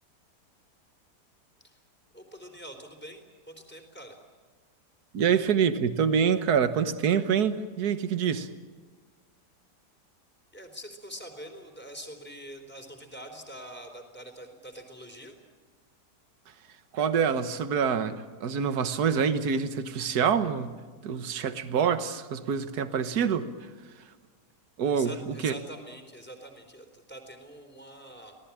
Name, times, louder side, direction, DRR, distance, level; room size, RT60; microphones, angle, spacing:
voice 1, 2.1-4.2 10.5-15.4 24.9-28.4, equal, 5° left, 3.9 m, -45 dB
voice 2, 5.1-8.5 16.9-20.8 21.0-23.7 24.0-24.1 24.8-25.5, right 7 dB, 65° right, 1.8 m, -26 dB
26.5 x 18.5 x 8.7 m
omnidirectional pair, 1.8 m